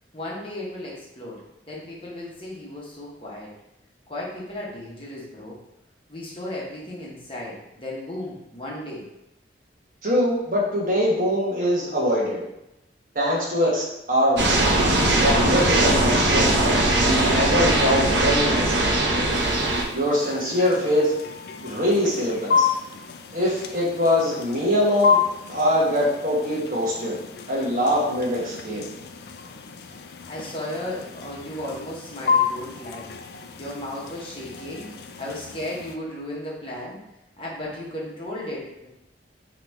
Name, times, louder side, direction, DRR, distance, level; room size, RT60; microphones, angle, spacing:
voice 1, 0.1-1.4 1.7-3.5 4.1-5.6 6.1-9.1 30.2-33.1 33.6-34.9 35.2-37.0 37.4-38.9, left 1 dB, 30° left, -5 dB, 1.0 m, -35 dB
voice 2, 10.0-12.4 13.1-14.5 15.1-19.3 19.9-21.1 21.6-22.7 23.3-25.2 25.5-27.2 27.5-28.8, equal, 45° right, -5 dB, 1.2 m, -23 dB
sound 1, 14.4-19.8, right 1 dB, 75° right, 0.8 m, -20 dB
sound 2, 19.3-36.0, left 6 dB, 55° left, 0.3 m, -30 dB
3.9 x 3.0 x 4.5 m, 0.88 s
head